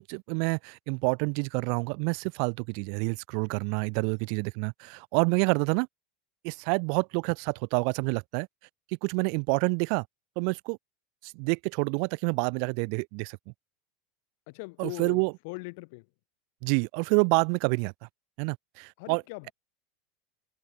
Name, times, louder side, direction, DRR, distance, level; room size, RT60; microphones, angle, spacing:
voice 1, 0.0-5.9 6.4-8.5 9.0-10.0 10.4-10.8 11.2-13.4 14.8-15.3 16.6-17.9 18.4-19.2, right 40 dB or more, 60° right, 0.3 m, -28 dB
voice 2, 14.5-16.1 19.0-19.5, left 29 dB, 65° left, 1.2 m, -40 dB
supercardioid pair, 130°, 0 cm